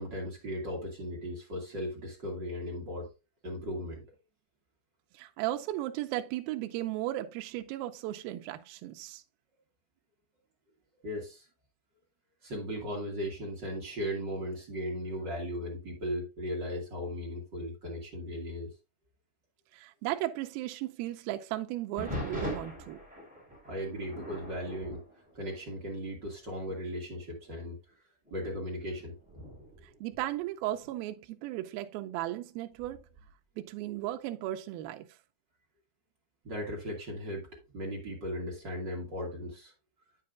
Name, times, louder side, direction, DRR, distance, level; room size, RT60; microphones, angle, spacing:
voice 1, 0.0-3.1 3.4-4.0 11.0-11.5 12.4-18.7 23.6-25.0 25.3-27.8 28.3-29.2 36.4-37.5 37.7-39.7, equal, 40° right, 1.9 m, -37 dB
voice 2, 5.1-9.2 19.7-23.0 30.0-33.1 33.6-35.1, right 15 dB, 85° right, 2.3 m, -36 dB
sound 1, 22.0-26.1 26.4-26.8 27.4-27.5 28.2-30.9 32.8-33.3, equal, ahead, 3.4 m, -42 dB
9.4 x 7.6 x 2.5 m
omnidirectional pair, 4.4 m